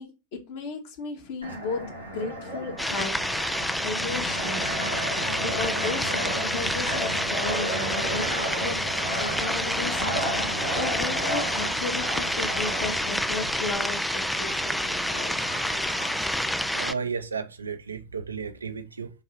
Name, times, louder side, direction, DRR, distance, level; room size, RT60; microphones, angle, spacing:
voice 1, 0.0-1.8 2.1-3.2 3.8-5.0 5.4-8.3 8.6-8.8 9.2-10.3 10.8-15.3, left 4 dB, 50° left, 2.0 m, -35 dB
Fixed-wing aircraft airplane, 1.4-16.7, right 1 dB, 90° left, 2.0 m, -33 dB
sound 1, 2.8-16.9, left 1 dB, 5° left, 0.4 m, -28 dB
voice 2, 16.7-19.1, right 5 dB, 75° right, 0.8 m, -33 dB
7.0 x 3.8 x 4.4 m
figure-of-eight pair, 90°, 0 cm